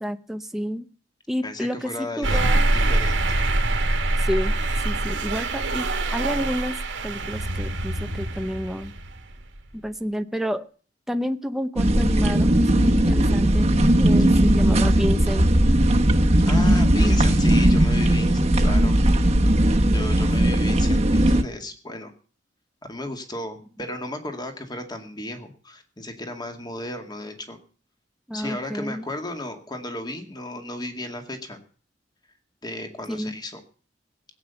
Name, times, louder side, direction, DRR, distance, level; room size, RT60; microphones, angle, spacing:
voice 1, 0.0-0.9 1.3-1.9 2.2-2.7 4.2-4.6 4.8-6.7 7.0-8.9 9.7-10.7 11.1-15.5 16.5-17.1 28.3-29.1 33.1-33.3, equal, ahead, 7 dB, 0.8 m, -30 dB
voice 2, 1.4-3.2 14.3-14.6 16.5-19.0 19.9-22.1 22.8-27.6 28.3-31.6 32.6-33.6, left 1 dB, 25° left, 5 dB, 2.1 m, -34 dB
sound 1, 2.2-9.6, right 2 dB, 90° right, 1.9 m, -24 dB
sound 2, 11.8-21.4, right 1 dB, 35° right, 1.2 m, -18 dB
17.5 x 8.7 x 6.9 m, 0.42 s
head